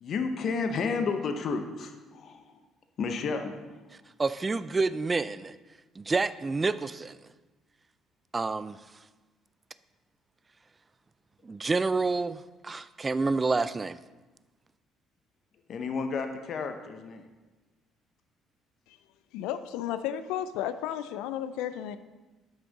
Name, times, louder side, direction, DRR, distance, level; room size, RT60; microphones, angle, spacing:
voice 1, 0.0-2.5 3.0-3.6 15.7-17.2, left 4 dB, 55° left, 6 dB, 0.8 m, -31 dB
voice 2, 4.2-5.6 6.0-7.2 8.3-8.8 11.4-14.0, right 3 dB, 30° right, 15 dB, 0.4 m, -28 dB
voice 3, 19.3-22.0, left 10 dB, 80° left, 12 dB, 0.3 m, -33 dB
8.6 x 6.0 x 4.0 m, 1.2 s
hypercardioid pair, 60°, 0 cm